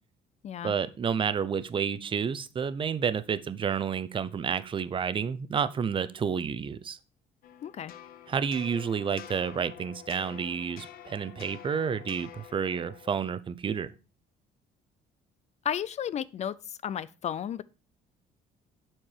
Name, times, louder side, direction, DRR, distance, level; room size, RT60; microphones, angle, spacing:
voice 1, 0.6-7.0 8.3-13.9, right 7 dB, 30° right, 0.6 m, -30 dB
sound 1, 7.4-13.3, left 10 dB, 60° left, 0.7 m, -48 dB
voice 2, 7.6-7.9 15.6-17.6, left 9 dB, 40° left, 0.4 m, -33 dB
7.3 x 4.5 x 4.7 m
cardioid pair, 110°, 17 cm